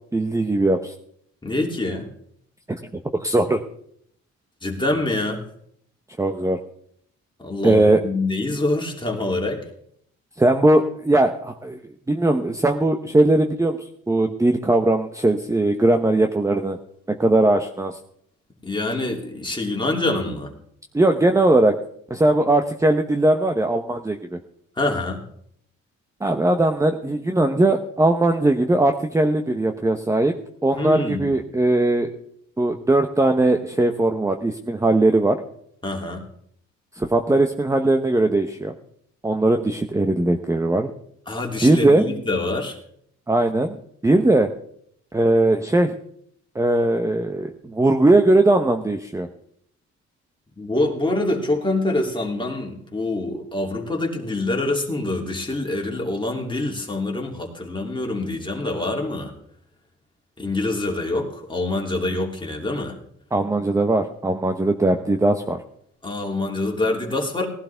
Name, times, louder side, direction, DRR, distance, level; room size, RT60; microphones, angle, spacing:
voice 1, 0.1-0.9 2.7-2.8 3.1-3.6 6.2-6.6 7.6-8.0 10.4-16.8 17.1-18.0 20.9-21.8 22.1-24.4 26.2-30.3 30.6-32.1 32.6-35.4 37.0-38.7 39.2-40.9 41.6-42.1 43.3-43.8 44.0-44.5 45.1-45.9 46.5-49.3 63.3-65.6, right 2 dB, 10° right, 6 dB, 0.8 m, -19 dB
voice 2, 1.4-2.1 4.6-5.4 7.4-9.6 18.6-20.5 24.8-25.2 30.7-31.3 35.8-36.2 41.3-42.8 50.6-59.3 60.4-63.0 66.0-67.5, left 2 dB, 15° left, 0 dB, 2.8 m, -25 dB
18.5 x 11.5 x 3.4 m, 0.68 s
cardioid pair, 90°, 30 cm